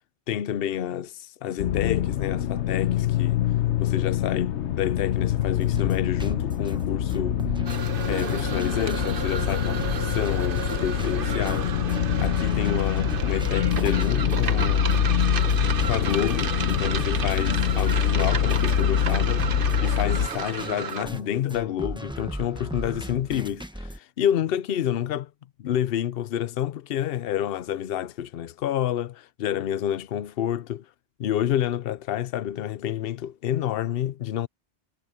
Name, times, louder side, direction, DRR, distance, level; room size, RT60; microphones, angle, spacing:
voice 1, 0.3-3.4 3.8-7.4 8.1-11.7 12.2-15.0 15.8-25.3 25.6-30.9 31.2-34.5, left 10 dB, 60° left, 0.8 m, -29 dB
sound 1, 1.6-20.3, left 9 dB, 85° left, 1.1 m, -25 dB
sound 2, 5.4-24.0, equal, 5° right, 1.1 m, -38 dB
sound 3, 7.6-21.0, right 6 dB, 55° right, 1.1 m, -33 dB
omnidirectional pair, 1.1 m